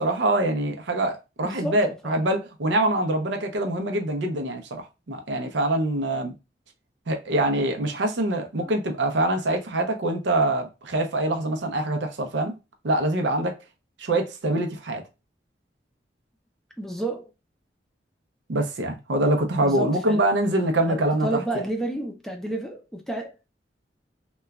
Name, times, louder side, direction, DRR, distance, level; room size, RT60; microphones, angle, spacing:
voice 1, 0.0-6.3 7.1-12.5 12.8-13.5 14.0-15.0 18.5-21.3, right 1 dB, 80° right, 0.6 m, -24 dB
voice 2, 1.4-2.3 8.6-8.8 16.8-17.3 19.6-20.3 20.8-23.3, right 1 dB, 5° left, 0.5 m, -31 dB
2.9 x 2.2 x 2.3 m
head